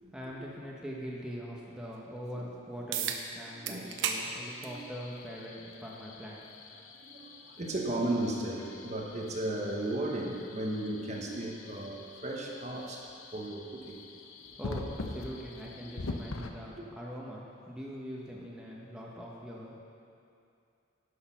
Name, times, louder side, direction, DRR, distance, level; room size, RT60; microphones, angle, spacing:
voice 1, 0.1-6.4 14.6-19.8, equal, 5° right, -4 dB, 0.9 m, -42 dB
sound 1, 2.9-3.2 3.7-4.2 4.6-4.8 5.9-6.0 10.9-11.0, right 8 dB, 65° right, 0.8 m, -32 dB
voice 2, 3.5-4.8 7.0-14.0, right 1 dB, 35° right, -1 dB, 1.1 m, -35 dB
sound 2, 3.9-16.5, left 3 dB, 85° left, 0.7 m, -45 dB
11.5 x 6.5 x 5.6 m, 2.6 s
head